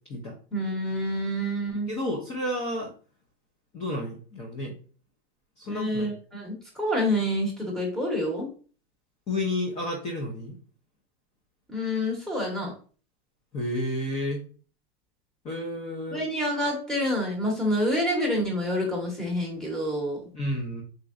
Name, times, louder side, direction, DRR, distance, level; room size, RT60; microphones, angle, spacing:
voice 1, 0.5-1.9 5.7-8.5 11.7-12.7 16.1-20.2, equal, ahead, -2 dB, 0.9 m, -27 dB
voice 2, 1.9-2.9 3.7-4.7 5.6-6.1 9.3-10.6 13.5-14.4 15.4-16.2 20.3-20.8, left 1 dB, 20° left, 0 dB, 0.5 m, -31 dB
3.7 x 3.0 x 2.4 m, 0.39 s
hypercardioid pair, 145°, 32 cm